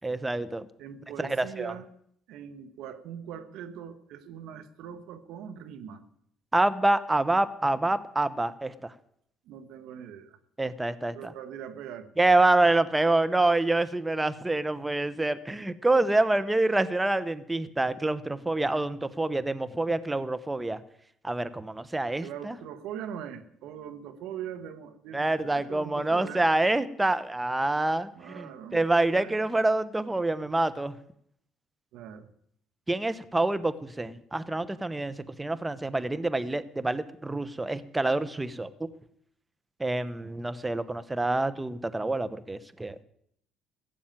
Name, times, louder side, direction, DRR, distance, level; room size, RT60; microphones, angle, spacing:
voice 1, 0.0-0.6 1.2-1.7 6.5-8.9 10.6-11.3 12.2-20.8 21.2-22.6 25.1-30.9 32.9-38.9 39.8-43.0, right 2 dB, 15° right, 14 dB, 1.0 m, -27 dB
voice 2, 0.8-1.8 2.3-6.0 9.4-10.4 11.1-12.1 22.2-26.5 28.1-28.8 29.2-29.4 31.9-32.3, right 9 dB, 75° right, 11 dB, 1.4 m, -41 dB
15.5 x 7.3 x 9.0 m, 0.70 s
supercardioid pair, 75°, 0 cm